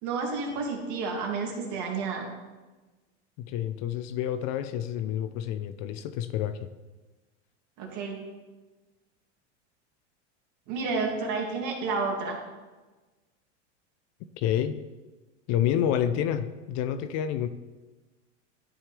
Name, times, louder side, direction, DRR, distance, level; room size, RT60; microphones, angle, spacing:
voice 1, 0.0-2.3 7.8-8.2 10.7-12.4, right 4 dB, 50° right, 0 dB, 2.3 m, -30 dB
voice 2, 3.4-6.7 14.4-14.8 15.5-17.5, left 10 dB, 50° left, 12 dB, 0.5 m, -28 dB
12.5 x 4.6 x 3.3 m, 1.2 s
hypercardioid pair, 105°, 36 cm